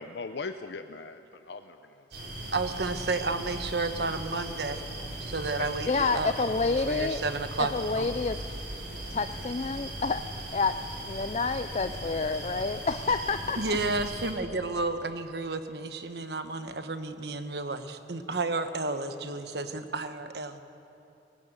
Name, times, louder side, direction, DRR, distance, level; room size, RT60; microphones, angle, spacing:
voice 1, 0.0-2.0 5.6-5.7, left 4 dB, 80° left, 8 dB, 0.6 m, -39 dB
sound 1, 2.1-14.3, right 1 dB, 90° right, 4.5 m, -38 dB
voice 2, 2.5-4.8 5.2-6.5 6.9-8.1 13.6-20.6, right 3 dB, 70° right, 9 dB, 1.2 m, -32 dB
voice 3, 5.9-7.2 7.6-8.4 9.1-10.2 10.5-10.8 11.1-13.8, left 4 dB, 35° left, 9 dB, 0.4 m, -28 dB
19.0 x 19.0 x 8.0 m, 2.7 s
head